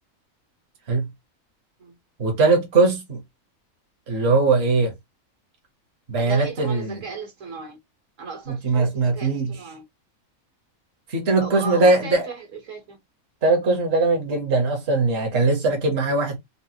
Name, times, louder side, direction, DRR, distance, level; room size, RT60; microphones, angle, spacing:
voice 1, 2.2-3.2 4.1-4.9 6.1-7.0 8.5-9.6 11.1-12.2 13.4-16.4, right 3 dB, 50° right, 1.2 m, -20 dB
voice 2, 6.2-7.8 8.2-9.8 11.4-13.0, right 5 dB, 65° right, 1.5 m, -36 dB
4.1 x 2.1 x 2.7 m
omnidirectional pair, 1.4 m